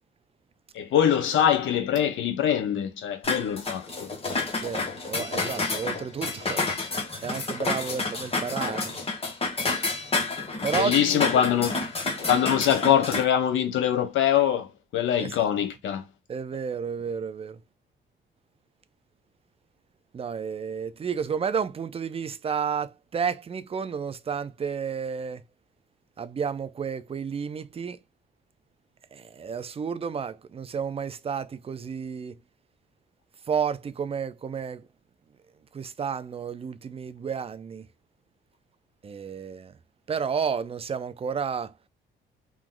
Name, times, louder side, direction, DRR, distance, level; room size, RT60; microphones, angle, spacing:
voice 1, 0.7-4.1 10.7-11.7 12.3-16.0, left 9 dB, 80° left, 0.9 m, -23 dB
sound 1, 3.2-13.2, left 3 dB, 30° left, 1.1 m, -29 dB
voice 2, 4.5-6.6 7.2-9.0 10.6-11.2 15.2-15.3 16.3-17.6 20.1-25.4 26.2-28.0 29.1-32.4 33.5-34.9 35.7-37.9 39.0-39.8 40.1-41.7, right 6 dB, 30° right, 0.4 m, -31 dB
3.0 x 2.4 x 3.7 m
cardioid pair, 90°, 20 cm